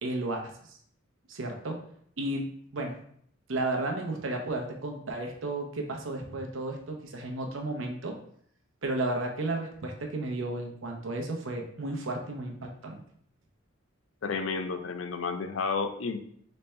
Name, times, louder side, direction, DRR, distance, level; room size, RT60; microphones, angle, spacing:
voice 1, 0.0-0.8 1.3-1.8 2.2-2.9 3.5-8.2 8.8-13.0, right 2 dB, 70° right, 2 dB, 0.8 m, -33 dB
voice 2, 14.2-16.2, left 4 dB, 70° left, 8 dB, 0.5 m, -31 dB
4.2 x 3.3 x 3.3 m, 0.64 s
head